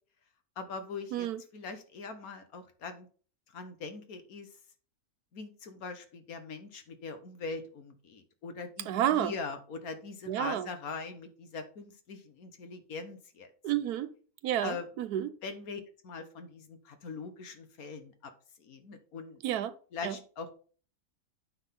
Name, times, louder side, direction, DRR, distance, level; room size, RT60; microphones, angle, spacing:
voice 1, 0.6-3.1 3.5-4.5 5.3-13.5 14.6-14.9 15.4-18.3 18.6-19.4 19.9-20.5, left 4 dB, 70° left, 1.6 m, -42 dB
voice 2, 1.1-1.4 8.9-9.3 10.3-10.7 13.6-14.1 14.4-15.3 19.4-19.7 20.0-20.2, right 11 dB, 90° right, 1.2 m, -30 dB
8.7 x 3.9 x 5.7 m
omnidirectional pair, 1.6 m